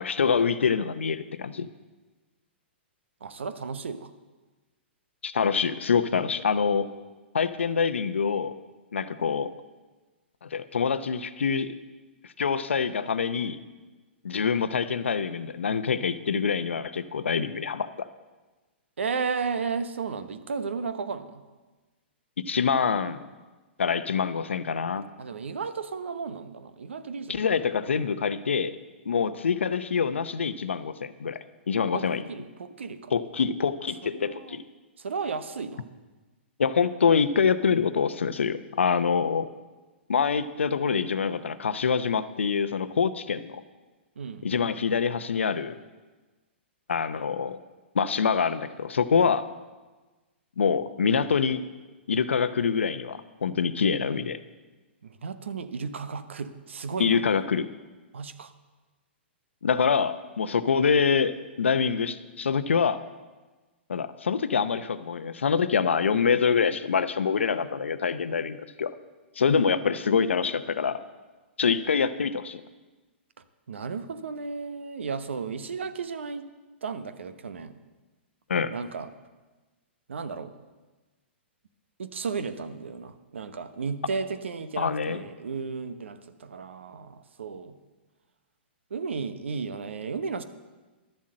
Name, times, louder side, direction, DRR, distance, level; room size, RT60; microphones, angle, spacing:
voice 1, 0.0-1.7 5.2-6.9 7.3-8.5 8.9-9.5 10.4-11.7 12.4-13.6 14.2-18.1 22.5-23.2 23.8-25.0 27.3-28.8 29.1-32.2 33.1-34.6 36.6-39.5 40.1-43.6 44.4-45.8 46.9-47.6 47.9-49.4 50.6-51.6 52.1-54.4 57.0-57.7 59.6-63.0 63.9-68.9 69.4-71.0 71.6-72.6 78.5-78.7 84.8-85.2, left 6 dB, 85° left, 13 dB, 0.7 m, -25 dB
voice 2, 3.2-4.1 19.0-21.4 25.2-27.6 31.9-33.1 34.0-34.6 35.0-35.9 44.2-44.5 49.2-49.3 55.0-57.2 58.1-58.5 69.5-69.7 73.7-76.5 76.8-77.7 78.7-79.1 80.1-80.5 82.0-87.8 88.9-90.4, right 5 dB, 80° right, 11 dB, 0.9 m, -34 dB
12.0 x 7.5 x 7.6 m, 1.2 s
hypercardioid pair, 125°, 6 cm